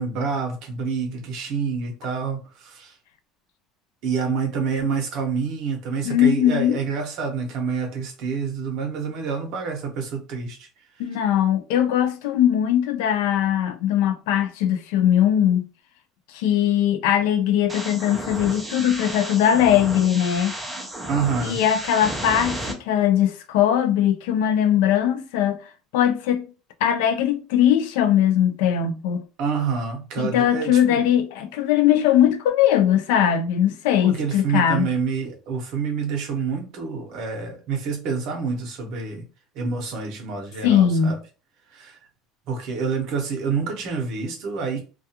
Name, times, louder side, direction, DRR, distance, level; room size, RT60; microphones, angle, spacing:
voice 1, 0.0-2.9 4.0-10.7 21.1-21.6 29.4-31.0 34.0-39.2 39.5-41.2 41.7-42.0 42.5-44.8, right 5 dB, 55° right, 0.8 m, -27 dB
voice 2, 6.0-6.8 11.0-15.6 16.3-20.6 21.4-25.6 25.9-26.4 26.8-29.2 30.2-34.9 40.6-41.1, left 10 dB, 85° left, 0.4 m, -20 dB
sound 1, 17.7-22.7, right 1 dB, 5° right, 0.5 m, -33 dB
2.3 x 2.3 x 2.8 m
cardioid pair, 165°, 0 cm